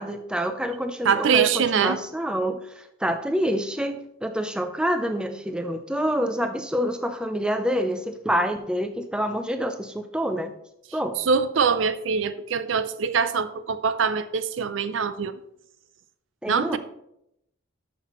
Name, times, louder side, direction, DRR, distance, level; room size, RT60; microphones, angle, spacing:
voice 1, 0.0-10.5 10.9-11.2 16.4-16.8, equal, 5° right, 0.4 m, -27 dB
voice 2, 1.0-2.0 11.3-15.3 16.5-16.8, right 6 dB, 65° right, 0.5 m, -23 dB
13.0 x 5.8 x 3.0 m
head